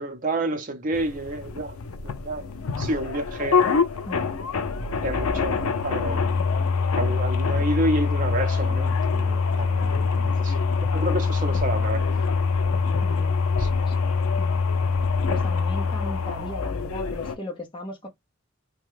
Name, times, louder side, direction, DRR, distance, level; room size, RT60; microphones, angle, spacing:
voice 1, 0.0-1.8 2.0-2.4 2.8-3.8 5.0-6.3 7.0-12.0 12.7-13.0 13.6-13.7, right 1 dB, 40° right, 0.7 m, -29 dB
sound 1, 0.9-17.4, left 4 dB, 90° left, 0.5 m, -24 dB
voice 2, 4.0-4.4 13.0-13.5 13.9-14.0 14.4-14.7 15.3-18.1, left 1 dB, 25° left, 0.7 m, -37 dB
2.8 x 2.2 x 3.2 m
head